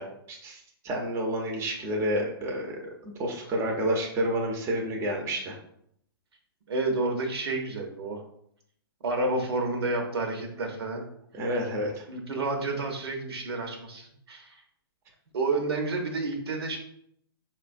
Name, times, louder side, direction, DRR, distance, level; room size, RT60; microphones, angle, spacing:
voice 1, 0.0-5.6 11.3-12.1, right 1 dB, 20° right, 1 dB, 0.7 m, -30 dB
voice 2, 6.7-8.2 9.0-11.0 12.1-14.6 15.3-16.8, right 2 dB, 80° right, 3 dB, 0.8 m, -30 dB
5.2 x 2.2 x 2.5 m, 0.71 s
hypercardioid pair, 135°, 13 cm